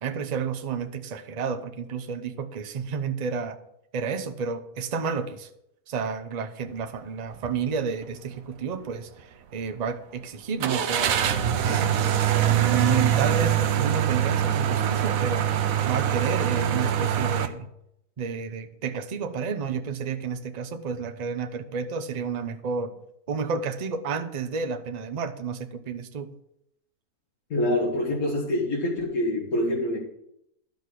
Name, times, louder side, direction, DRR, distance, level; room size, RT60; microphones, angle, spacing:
voice 1, 0.0-3.6 3.9-5.5 5.9-11.2 11.6-12.1 12.4-17.7 18.2-23.0 23.3-26.3, right 5 dB, 40° right, 0.6 m, -31 dB
sound 1, 7.3-7.6 8.0-8.1 10.6-17.5, right 9 dB, 70° right, 1.1 m, -23 dB
voice 2, 27.5-30.0, left 1 dB, 65° left, 2.0 m, -25 dB
11.5 x 5.3 x 6.1 m
omnidirectional pair, 1.6 m